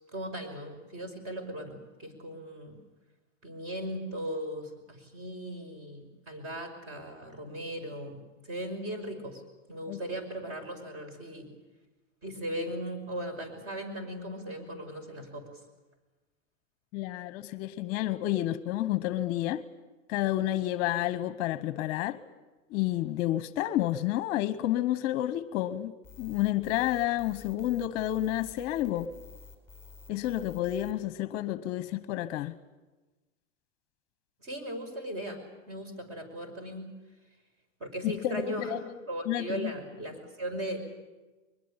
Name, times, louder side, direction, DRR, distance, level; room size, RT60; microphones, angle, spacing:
voice 1, 0.1-2.8 3.4-9.4 9.7-11.5 12.2-15.6 34.4-35.4 35.7-36.9 37.8-38.7 39.1-40.8, right 1 dB, 35° right, 5.8 m, -38 dB
voice 2, 16.9-19.6 20.1-22.2 22.7-25.9 26.2-29.1 30.1-32.5 38.0-38.9 39.3-39.7, left 14 dB, 40° left, 0.9 m, -30 dB
sound 1, 26.0-30.9, left 6 dB, 5° left, 4.6 m, -51 dB
22.5 x 21.5 x 8.9 m
supercardioid pair, 140°, 38 cm